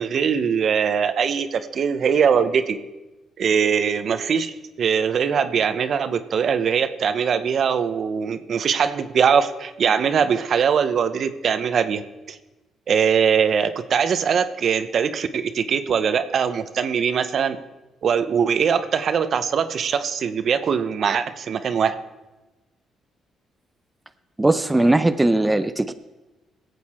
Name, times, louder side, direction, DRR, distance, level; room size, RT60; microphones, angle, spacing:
voice 1, 0.0-2.8 3.4-12.0 12.3-12.4 12.9-17.6 18.0-22.0, right 7 dB, 55° right, 11 dB, 0.8 m, -21 dB
voice 2, 24.4-25.9, right 2 dB, 15° right, 10 dB, 0.6 m, -19 dB
20.0 x 8.1 x 4.3 m, 1.1 s
cardioid pair, 90°, 0 cm